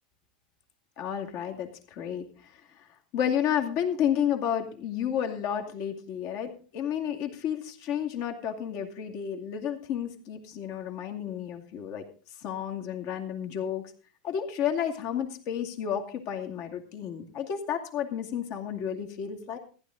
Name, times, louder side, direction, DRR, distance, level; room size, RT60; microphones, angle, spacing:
voice 1, 1.0-2.8 3.1-12.0 12.4-13.9 14.2-19.6, left 9 dB, 50° left, 4 dB, 2.4 m, -31 dB
15.0 x 11.0 x 3.8 m, 0.38 s
supercardioid pair, 130°, 4 cm